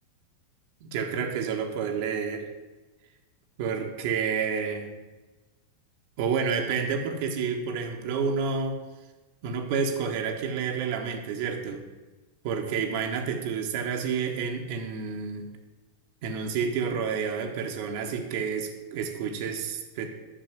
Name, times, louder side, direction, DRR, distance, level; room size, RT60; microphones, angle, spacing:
voice 1, 0.8-2.5 3.6-4.9 6.2-8.8 9.4-11.8 12.4-15.4 16.2-20.1, right 6 dB, 50° right, 2 dB, 1.4 m, -29 dB
10.0 x 6.8 x 7.6 m, 1.2 s
figure-of-eight pair, 90°, 0 cm